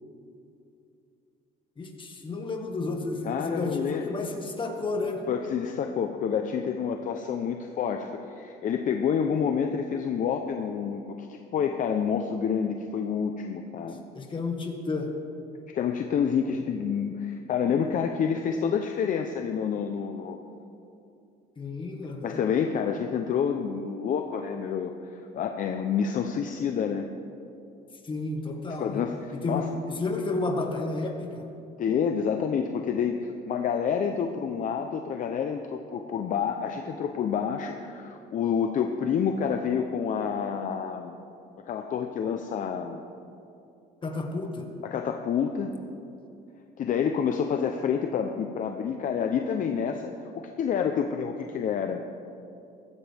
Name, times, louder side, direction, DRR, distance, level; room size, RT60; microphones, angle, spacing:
voice 1, 1.8-5.2 13.9-15.1 21.6-22.4 28.0-29.0 29.3-31.4 44.0-44.7, left 3 dB, 30° left, 3 dB, 1.8 m, -31 dB
voice 2, 3.2-4.1 5.3-14.0 15.7-20.4 22.2-27.1 28.8-29.7 31.8-41.2 41.7-43.0 44.8-45.7 46.8-52.0, left 7 dB, 50° left, 5 dB, 0.8 m, -28 dB
15.0 x 15.0 x 3.5 m, 2.6 s
cardioid pair, 110°, 17 cm